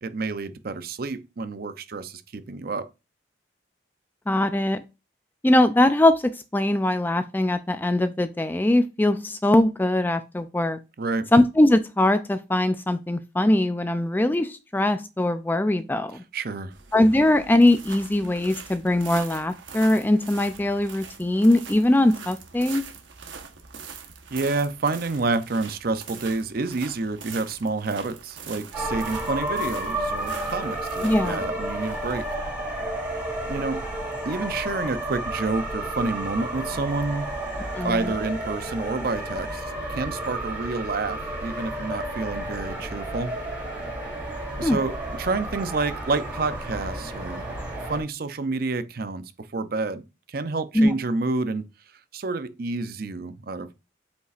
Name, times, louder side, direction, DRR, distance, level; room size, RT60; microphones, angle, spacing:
voice 1, 0.0-2.9 11.0-11.3 16.3-16.7 24.3-32.3 33.5-33.8 34.3-37.3 37.8-39.6 39.9-43.4 44.6-47.5 47.8-51.6 52.1-53.7, right 3 dB, 50° right, 0.5 m, -29 dB
voice 2, 4.3-4.8 5.4-10.8 11.3-16.2 16.9-22.8 31.0-31.4 37.7-38.1 44.6-44.8 50.7-50.9, left 1 dB, 10° left, 0.3 m, -21 dB
sound 1, 16.7-33.6, right 6 dB, 80° right, 1.1 m, -43 dB
sound 2, 28.7-48.0, right 1 dB, 10° right, 2.9 m, -31 dB
8.0 x 5.2 x 2.4 m
head